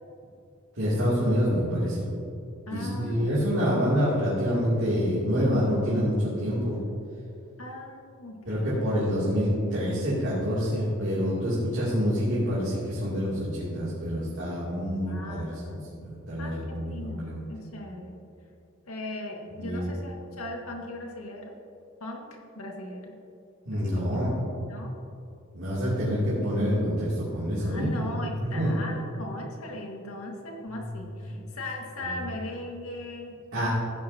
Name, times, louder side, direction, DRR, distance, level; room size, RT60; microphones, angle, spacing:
voice 1, 0.8-2.0 2.7-6.8 8.4-17.5 19.6-19.9 23.7-24.3 25.5-28.7 30.7-30.8 31.3-31.4 32.0-32.1 33.5-33.7, equal, 60° right, -9 dB, 2.9 m, -27 dB
voice 2, 2.7-3.7 7.6-8.7 15.0-15.9 16.4-18.2 18.9-21.5 22.0-23.1 23.7-24.3 24.7-24.9 27.5-33.4, left 1 dB, 85° left, 0 dB, 1.9 m, -39 dB
15.0 x 10.5 x 2.9 m, 2.6 s
head